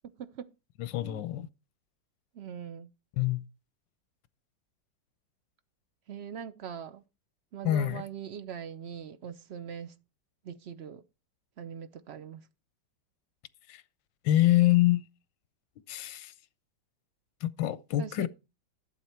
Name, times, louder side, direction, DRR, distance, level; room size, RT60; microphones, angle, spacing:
voice 1, 0.0-0.5 1.0-1.2 2.3-2.9 6.1-7.0 7.5-9.9 10.4-11.0 11.6-12.4 18.0-18.3, right 8 dB, 75° right, 0.5 m, -41 dB
voice 2, 0.8-1.5 3.2-3.4 7.6-8.0 13.7-13.8 14.2-15.0 15.9-16.3 17.4-18.3, left 14 dB, 85° left, 1.4 m, -25 dB
11.5 x 8.0 x 4.4 m
omnidirectional pair, 2.0 m